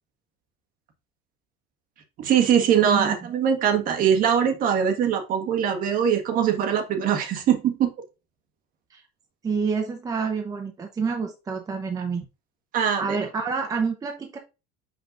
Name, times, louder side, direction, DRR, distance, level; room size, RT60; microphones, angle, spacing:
voice 1, 2.2-7.9 12.7-13.2, right 8 dB, 45° right, 5 dB, 1.6 m, -22 dB
voice 2, 2.8-3.2 8.9-9.0 9.4-12.3 13.0-14.4, right 5 dB, 20° right, 4 dB, 0.8 m, -28 dB
6.6 x 5.7 x 2.6 m, 0.28 s
cardioid pair, 155°, 20 cm